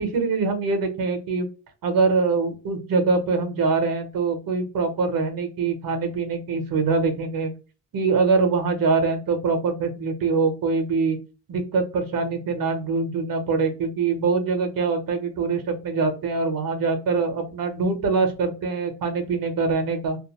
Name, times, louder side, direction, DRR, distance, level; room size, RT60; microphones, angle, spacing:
voice 1, 0.0-1.5 1.8-7.5 7.9-11.2 11.5-20.2, right 4 dB, 60° right, 5 dB, 1.0 m, -23 dB
2.6 x 2.1 x 3.0 m, 0.33 s
cardioid pair, 110°, 38 cm